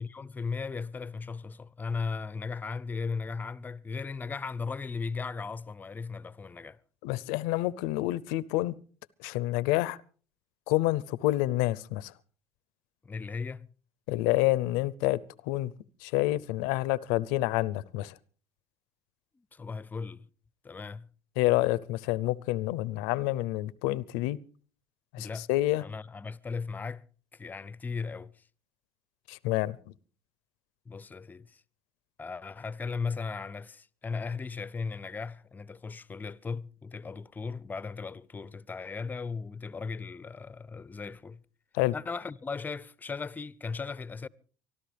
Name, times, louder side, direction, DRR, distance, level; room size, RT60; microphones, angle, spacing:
voice 1, 0.0-6.8 13.0-13.7 19.3-20.3 20.6-21.1 25.2-25.5 25.8-27.1 27.3-28.4 30.9-31.6 32.2-41.4 41.9-44.3, left 4 dB, 20° left, 0.6 m, -37 dB
voice 2, 7.0-8.7 9.2-10.0 10.7-12.1 14.1-15.7 16.0-18.1 21.4-24.4 25.1-25.8 29.3-29.8 41.7-41.9, left 17 dB, 80° left, 0.6 m, -28 dB
24.5 x 13.0 x 3.4 m
supercardioid pair, 85°, 9 cm